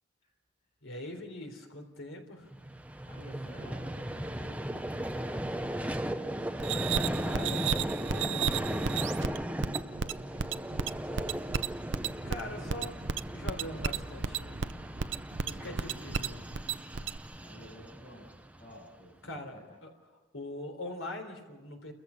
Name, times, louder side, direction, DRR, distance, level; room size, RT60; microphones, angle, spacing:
voice 1, 0.8-2.5 7.0-9.2 12.0-13.0 13.3-14.6 15.5-16.5 19.2-19.6 19.8-19.9 20.3-21.9, left 1 dB, 80° left, 4 dB, 3.7 m, -42 dB
Vehicle, 2.5-18.9, right 1 dB, 5° right, 0.6 m, -37 dB
voice 2, 3.0-6.8 9.8-11.6 15.4-16.3 17.4-18.3 18.6-19.8, equal, 35° left, -2 dB, 7.5 m, -52 dB
sound 1, 6.6-17.2, right 6 dB, 65° right, 0.6 m, -33 dB
29.0 x 14.5 x 7.0 m, 1.2 s
head